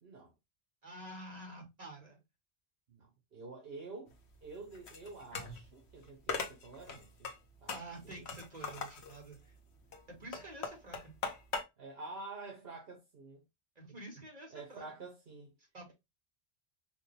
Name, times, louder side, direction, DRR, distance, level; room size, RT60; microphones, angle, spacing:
voice 1, 0.0-0.3 2.9-4.1 4.4-7.3 7.6-7.8 8.0-8.3 11.8-13.4 14.5-15.5, right 3 dB, 60° right, 1.2 m, -48 dB
voice 2, 0.8-2.2 7.7-9.5 10.2-11.1 13.7-14.9 15.7-15.9, right 2 dB, 40° right, 1.8 m, -48 dB
sound 1, 4.1-11.6, left 5 dB, 75° left, 1.1 m, -42 dB
4.9 x 2.3 x 3.2 m
omnidirectional pair, 1.1 m